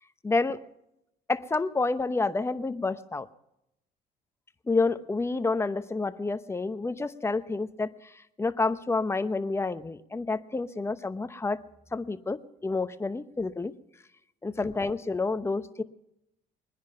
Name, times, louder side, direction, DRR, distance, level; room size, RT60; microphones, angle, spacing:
voice 1, 0.2-0.7 1.3-3.3 4.7-11.6 11.9-13.7 14.4-15.8, left 3 dB, 15° left, 11 dB, 0.8 m, -29 dB
21.5 x 10.5 x 5.6 m, 0.82 s
cardioid pair, 110°, 17 cm